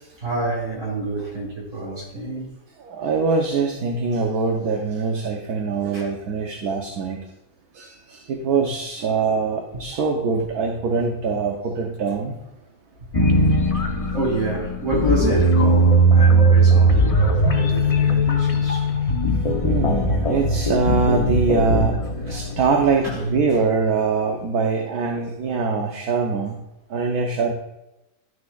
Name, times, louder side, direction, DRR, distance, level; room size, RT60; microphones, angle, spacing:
voice 1, 0.2-2.5 5.9-6.1 9.7-9.8 13.4-19.0 22.2-22.5 23.0-23.3, right 2 dB, 50° right, 2.8 m, -29 dB
voice 2, 2.8-7.2 7.7-12.4 19.6-22.0 22.3-26.6 26.9-27.5, right 4 dB, 75° right, 1.4 m, -23 dB
sound 1, 13.1-23.3, right 1 dB, 30° left, 0.7 m, -19 dB
12.0 x 6.4 x 2.4 m
omnidirectional pair, 1.7 m